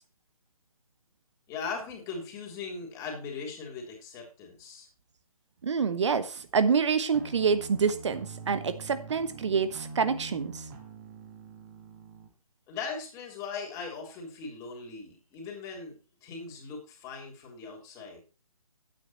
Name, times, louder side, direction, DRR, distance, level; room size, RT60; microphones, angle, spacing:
voice 1, 1.5-4.9 12.7-18.2, left 5 dB, 15° left, 3.5 m, -39 dB
voice 2, 5.6-10.6, right 5 dB, 50° right, 1.1 m, -27 dB
sound 1, 7.1-12.3, right 4 dB, 30° right, 1.9 m, -44 dB
10.5 x 9.0 x 4.3 m
figure-of-eight pair, 140°, 19 cm